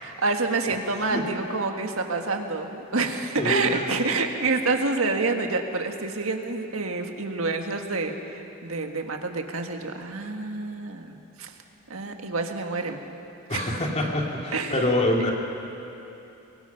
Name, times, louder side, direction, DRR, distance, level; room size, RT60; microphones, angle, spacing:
voice 1, 0.0-11.5 11.9-13.0 13.5-13.7 14.5-14.9, right 3 dB, 85° right, 4 dB, 1.6 m, -28 dB
voice 2, 0.9-1.3 3.4-3.9 13.5-15.3, left 1 dB, 30° left, -1 dB, 2.6 m, -26 dB
24.0 x 22.0 x 5.8 m, 2.9 s
head